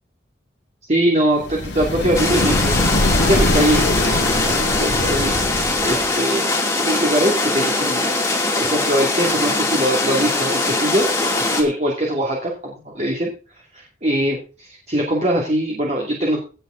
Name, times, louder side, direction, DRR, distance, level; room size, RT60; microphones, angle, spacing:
voice 1, 0.9-5.3 5.8-6.4 6.8-8.2 8.6-13.3 13.7-16.4, right 1 dB, 35° right, -2 dB, 2.3 m, -22 dB
sound 1, 1.4-6.1, left 2 dB, 75° left, 1.7 m, -22 dB
sound 2, 2.1-11.6, left 2 dB, 15° left, 2.3 m, -21 dB
17.5 x 6.6 x 3.8 m, 0.35 s
head